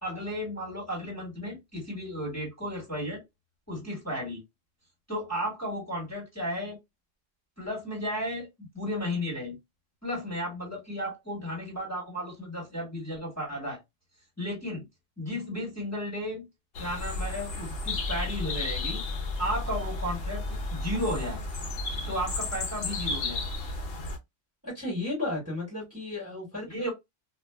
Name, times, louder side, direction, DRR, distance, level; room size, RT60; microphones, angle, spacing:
voice 1, 0.0-3.2 3.7-4.4 5.1-6.8 7.6-9.6 10.0-13.8 14.4-14.8 15.2-16.4 16.8-19.0 19.4-20.4 20.7-21.4 22.1-23.4 26.7-26.9, equal, 10° left, 1.4 m, -34 dB
sound 1, 16.8-24.2, left 2 dB, 60° left, 0.7 m, -33 dB
voice 2, 24.6-26.9, left 2 dB, 10° right, 1.4 m, -34 dB
2.5 x 2.4 x 2.2 m
omnidirectional pair, 1.3 m